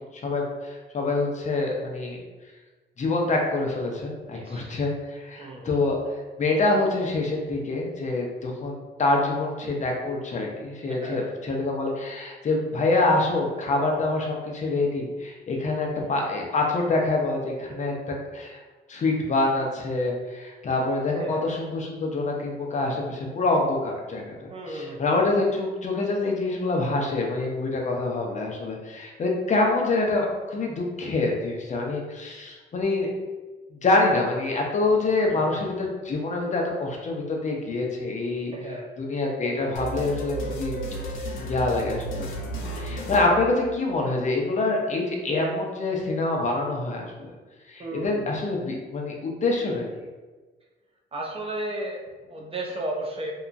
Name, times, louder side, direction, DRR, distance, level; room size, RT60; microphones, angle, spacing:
voice 1, 0.2-2.2 3.0-6.0 6.4-17.9 18.3-18.6 18.9-24.3 24.7-33.1 33.7-38.5 39.0-40.8 41.2-42.3 42.8-47.3 47.7-49.9, left 2 dB, 35° left, 0 dB, 0.6 m, -26 dB
voice 2, 4.3-4.9 5.4-5.8 11.0-11.3 15.6-16.1 21.1-21.4 24.5-25.0 35.3-35.7 38.5-38.9 47.8-48.4 51.1-53.3, right 1 dB, 30° right, -1 dB, 0.5 m, -35 dB
sound 1, 39.7-44.1, right 1 dB, 75° left, 0.6 m, -33 dB
2.8 x 2.3 x 2.5 m, 1.3 s
cardioid pair, 90°, 20 cm